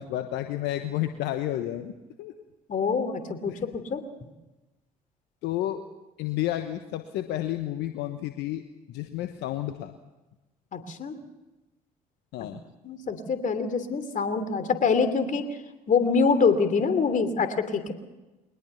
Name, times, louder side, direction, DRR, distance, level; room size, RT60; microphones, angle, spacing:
voice 1, 0.0-2.3 3.5-3.6 5.4-5.8 6.2-9.9 12.3-12.6, left 13 dB, 65° left, 8 dB, 1.2 m, -31 dB
voice 2, 2.7-4.0 10.7-11.2 12.4-12.5 12.8-15.6 15.9-17.9, left 5 dB, 45° left, 10 dB, 3.0 m, -25 dB
22.5 x 20.0 x 6.9 m, 1.1 s
hypercardioid pair, 55°, 19 cm